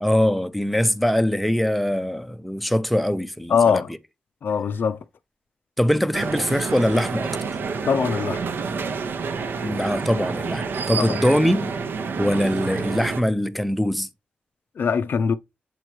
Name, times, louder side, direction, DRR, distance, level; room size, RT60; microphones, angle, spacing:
voice 1, 0.0-3.8 5.8-7.3 9.6-11.7 12.2-14.1, equal, ahead, 0.4 m, -22 dB
voice 2, 3.5-3.9 4.4-5.0 7.9-8.4 10.9-11.2 14.8-15.3, left 6 dB, 65° left, 0.4 m, -21 dB
sound 1, 6.1-13.2, right 5 dB, 70° right, 0.8 m, -28 dB
7.9 x 3.0 x 4.6 m
wide cardioid pair, 150°, 4 cm